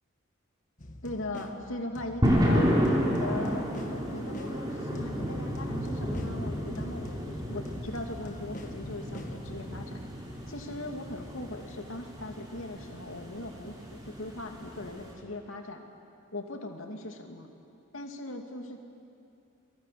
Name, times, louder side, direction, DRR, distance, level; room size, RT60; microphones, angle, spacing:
sound 1, 0.8-9.9, left 1 dB, 40° left, 1.5 m, -46 dB
voice 1, 1.0-10.0 10.5-15.8 16.3-17.5 17.9-18.8, left 2 dB, 75° left, 3 dB, 2.7 m, -39 dB
sound 2, 2.2-15.1, equal, 20° right, 4.6 m, -31 dB
29.0 x 23.5 x 7.8 m, 2.6 s
head